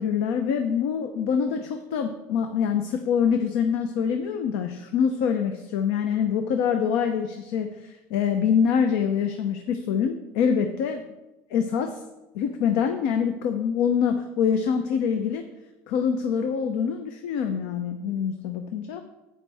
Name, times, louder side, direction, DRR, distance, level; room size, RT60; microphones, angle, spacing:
voice 1, 0.0-11.0 11.5-12.0 12.3-15.4 15.9-19.0, left 7 dB, 80° left, 7 dB, 0.7 m, -25 dB
10.5 x 8.8 x 3.4 m, 1.0 s
supercardioid pair, 115°, 8 cm